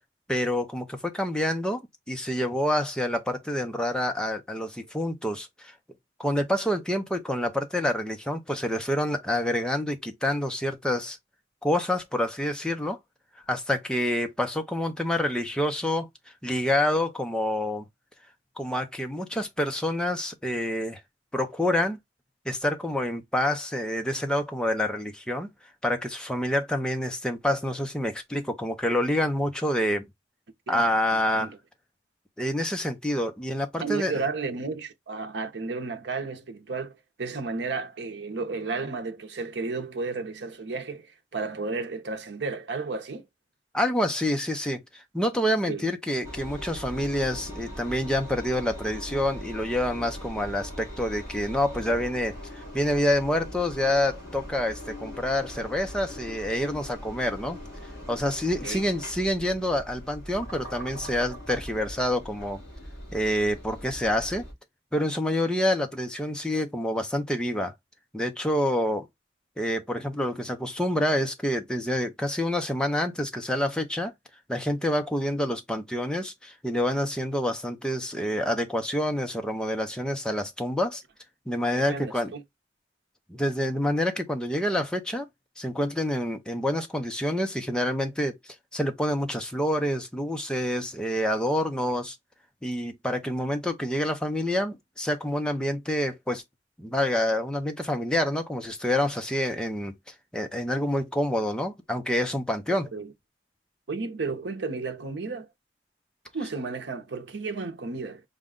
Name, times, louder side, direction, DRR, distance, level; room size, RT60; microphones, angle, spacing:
voice 1, 0.3-1.8 2.1-5.7 6.2-11.2 11.6-13.0 13.5-16.1 16.4-17.8 18.6-21.0 21.3-22.0 22.5-25.5 25.8-30.1 30.7-31.5 32.4-34.2 43.7-57.6 58.1-62.6 63.1-64.5 64.9-67.7 68.1-69.1 69.6-74.1 74.5-81.0 81.5-82.3 83.3-85.3 85.6-88.4 88.7-92.2 92.6-96.4 96.8-100.0 100.3-102.9, left 1 dB, 5° left, 0.5 m, -27 dB
voice 2, 31.1-31.6 33.8-36.9 37.2-43.2 45.7-45.8 58.6-58.8 81.7-82.4 102.9-103.1 103.9-105.5 106.3-108.2, right 4 dB, 80° right, 0.7 m, -33 dB
Engine, 46.2-64.5, equal, 45° left, 2.8 m, -41 dB
5.0 x 2.2 x 3.6 m
head